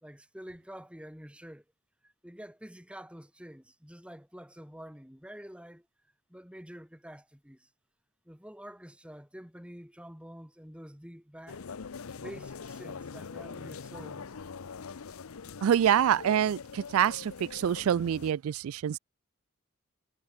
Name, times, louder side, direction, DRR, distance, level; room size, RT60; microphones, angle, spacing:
voice 1, 0.0-1.6 2.0-5.9 6.3-7.7 8.2-11.6 12.2-14.3, equal, 5° right, 3.2 m, -48 dB
sound 1, 11.5-18.3, left 5 dB, 85° left, 0.7 m, -43 dB
voice 2, 15.6-19.0, right 9 dB, 75° right, 0.3 m, -26 dB
head